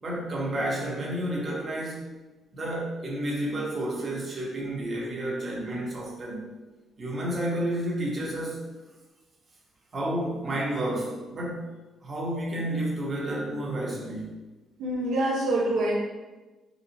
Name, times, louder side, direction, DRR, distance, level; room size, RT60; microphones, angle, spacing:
voice 1, 0.0-2.1 2.5-6.6 7.0-8.7 9.9-11.7 12.0-14.4, right 1 dB, 40° right, -5 dB, 1.2 m, -31 dB
voice 2, 14.8-15.9, right 1 dB, 85° right, -4 dB, 0.6 m, -25 dB
4.0 x 2.4 x 2.9 m, 1.2 s
cardioid pair, 90°, 0 cm